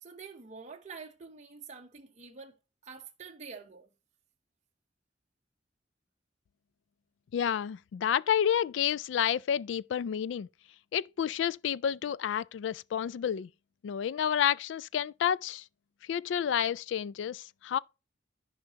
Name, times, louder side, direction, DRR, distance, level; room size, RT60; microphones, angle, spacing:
voice 1, 0.0-2.5 2.8-3.9, right 5 dB, 40° right, 0.8 m, -47 dB
voice 2, 7.3-10.5 10.9-13.5 13.8-15.6 16.1-17.8, left 9 dB, 80° left, 0.3 m, -30 dB
14.0 x 5.0 x 2.8 m
head